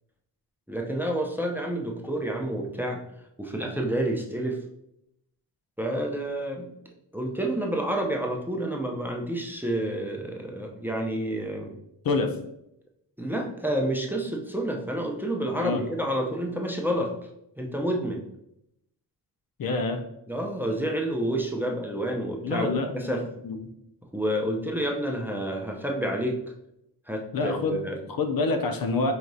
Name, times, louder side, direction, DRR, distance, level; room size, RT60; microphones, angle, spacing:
voice 1, 0.7-3.0 3.4-4.6 5.8-6.7 7.1-11.7 13.2-17.3 17.6-18.3 20.3-23.2 24.1-26.4 27.1-28.0, right 1 dB, 5° right, 1 dB, 0.6 m, -29 dB
voice 2, 19.6-20.0 22.4-22.9 23.4-23.7 27.3-27.8 28.1-29.1, left 3 dB, 60° left, 6 dB, 0.6 m, -26 dB
4.8 x 2.9 x 2.6 m, 0.79 s
cardioid pair, 85°, 40 cm